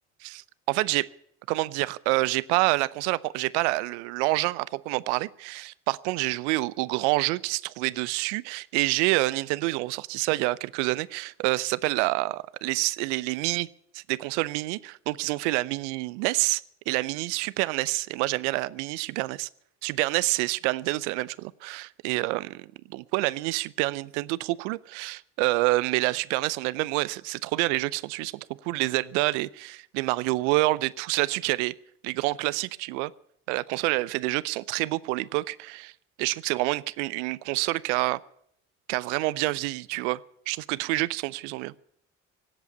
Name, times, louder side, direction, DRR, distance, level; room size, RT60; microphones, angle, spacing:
voice 1, 0.2-1.1 1.5-13.7 13.9-19.5 19.8-31.7 32.0-33.1 33.5-35.9 36.2-38.2 38.9-40.2 40.5-41.7, right 21 dB, 75° right, 21 dB, 0.6 m, -27 dB
17.5 x 8.2 x 8.6 m, 0.67 s
hypercardioid pair, 60°, 35 cm